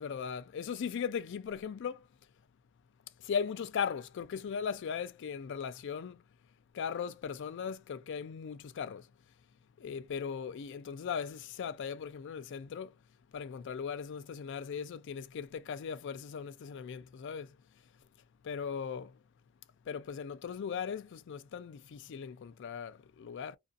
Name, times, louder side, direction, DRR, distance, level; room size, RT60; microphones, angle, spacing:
voice 1, 0.0-2.1 3.2-6.2 6.7-9.1 9.8-13.0 13.3-17.6 18.4-19.2 19.9-23.6, left 7 dB, 55° left, 0.3 m, -38 dB
2.4 x 2.4 x 2.4 m
head